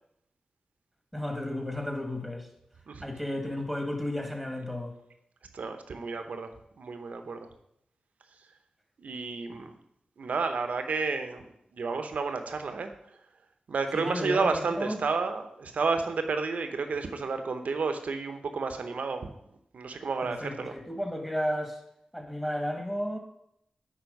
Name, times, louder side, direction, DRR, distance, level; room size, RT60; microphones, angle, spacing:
voice 1, 1.1-2.5 3.0-4.9 13.9-15.0 20.2-21.8 22.1-23.2, left 1 dB, 5° left, 4 dB, 1.5 m, -33 dB
voice 2, 5.5-6.5 6.8-7.5 9.0-9.8 10.2-11.5 11.7-12.9 13.7-19.3 19.7-20.7, right 4 dB, 80° right, 7 dB, 0.9 m, -31 dB
9.4 x 4.1 x 5.4 m, 0.76 s
cardioid pair, 60°, 2 cm